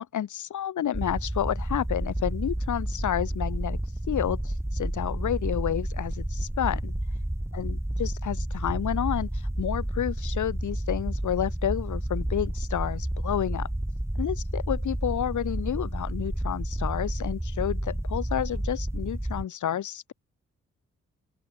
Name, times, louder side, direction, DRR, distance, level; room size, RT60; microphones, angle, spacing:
voice 1, 0.0-3.8 4.1-6.9 7.5-9.3 9.6-13.7 14.2-20.1, left 10 dB, 85° left, 2.8 m, -30 dB
sound 1, 0.9-19.4, right 1 dB, 10° right, 6.4 m, -30 dB
open air
cardioid pair, 50°, 29 cm